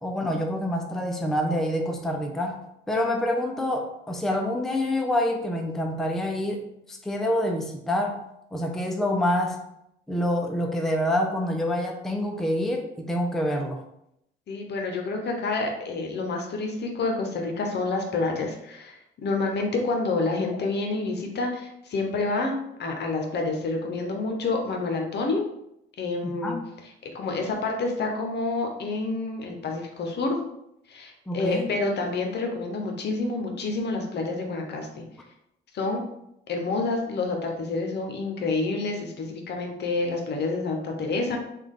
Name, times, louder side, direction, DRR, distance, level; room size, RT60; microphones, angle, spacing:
voice 1, 0.0-8.2 8.5-9.6 10.1-13.8 26.2-26.6 31.3-31.7, left 1 dB, ahead, 2 dB, 0.4 m, -27 dB
voice 2, 14.5-25.4 26.0-26.6 27.1-30.4 30.9-35.0 35.7-36.0 36.5-41.4, left 3 dB, 60° left, 2 dB, 0.7 m, -28 dB
3.4 x 2.3 x 3.6 m, 0.81 s
cardioid pair, 90°, 20 cm